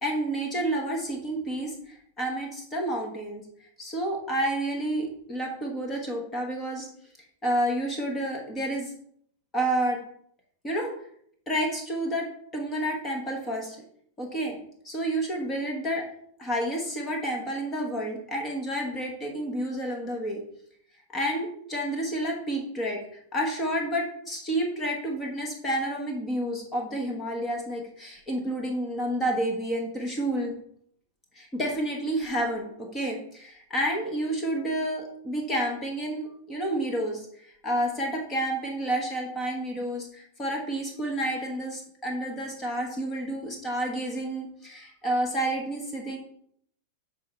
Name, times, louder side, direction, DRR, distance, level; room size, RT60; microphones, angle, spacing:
voice 1, 0.0-3.4 3.8-6.9 7.4-8.9 9.5-10.0 10.6-10.9 11.5-13.8 14.2-14.6 14.8-16.0 16.4-20.4 21.1-23.0 23.3-30.5 31.3-46.2, right 1 dB, 15° left, 0 dB, 1.2 m, -30 dB
8.3 x 3.7 x 5.6 m, 0.65 s
supercardioid pair, 170°, 0 cm